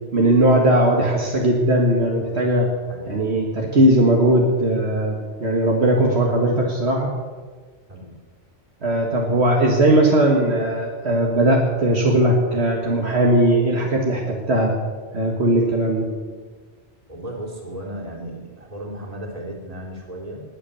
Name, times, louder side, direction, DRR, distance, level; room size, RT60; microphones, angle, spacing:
voice 1, 0.1-2.7 3.1-7.1 8.8-14.7 15.1-16.1, right 1 dB, 65° right, -1 dB, 2.0 m, -18 dB
voice 2, 17.1-20.4, right 1 dB, 30° right, -2 dB, 3.2 m, -35 dB
19.5 x 8.6 x 6.9 m, 1.5 s
omnidirectional pair, 1.2 m